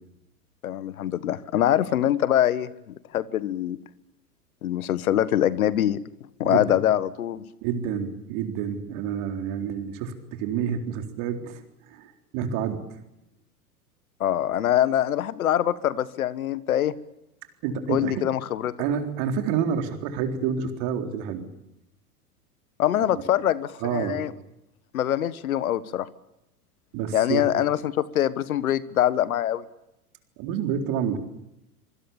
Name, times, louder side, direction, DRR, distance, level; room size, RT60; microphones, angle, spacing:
voice 1, 0.6-3.8 4.6-6.0 6.4-7.4 14.2-16.9 17.9-18.7 22.8-24.3 24.9-26.1 27.1-29.6, left 11 dB, 65° left, 17 dB, 1.5 m, -24 dB
voice 2, 6.4-6.8 7.6-12.8 17.6-18.3 18.8-21.5 23.8-24.3 26.9-27.7 30.4-31.2, right 7 dB, 45° right, 5 dB, 4.0 m, -28 dB
26.0 x 24.5 x 7.2 m, 0.88 s
figure-of-eight pair, 90°, 46 cm